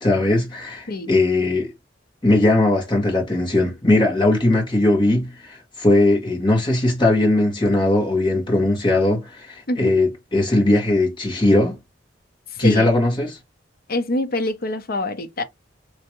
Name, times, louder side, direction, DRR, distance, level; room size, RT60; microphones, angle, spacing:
voice 1, 0.0-1.7 2.2-11.7 12.6-13.4, left 2 dB, 25° left, 1.7 m, -19 dB
voice 2, 9.7-10.0 12.6-13.0 13.9-15.4, left 1 dB, 55° left, 0.7 m, -25 dB
3.4 x 3.0 x 3.0 m
head